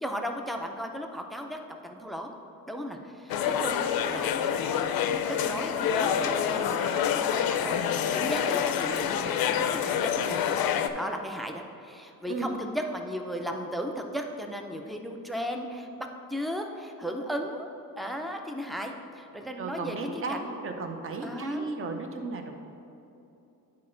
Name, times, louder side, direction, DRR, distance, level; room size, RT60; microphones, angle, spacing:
voice 1, 0.0-2.3 2.7-10.4 10.9-20.5 21.2-21.7, equal, ahead, 3 dB, 0.3 m, -36 dB
sound 1, 3.3-10.9, left 8 dB, 90° left, 0.5 m, -27 dB
voice 2, 12.3-12.6 19.6-22.5, right 3 dB, 40° right, 5 dB, 0.6 m, -34 dB
10.5 x 4.3 x 3.8 m, 2.8 s
wide cardioid pair, 165°, 35 cm